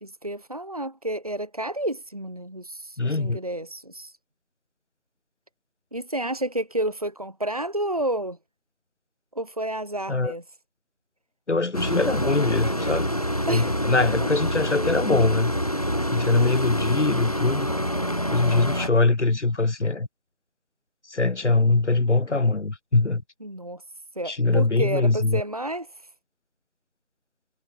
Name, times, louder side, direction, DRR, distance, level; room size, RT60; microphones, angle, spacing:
voice 1, 0.0-4.1 5.9-8.4 9.3-10.4 13.5-13.8 14.2-14.3 16.3-16.5 23.4-23.8 24.1-25.9, right 1 dB, 30° right, 1.7 m, -30 dB
voice 2, 3.0-3.4 10.1-10.3 11.5-13.1 13.5-15.5 16.1-17.7 18.3-20.1 21.1-23.2 24.2-25.4, left 3 dB, 80° left, 1.5 m, -22 dB
sound 1, 11.7-18.9, equal, 30° left, 1.2 m, -26 dB
figure-of-eight pair, 180°, 35 cm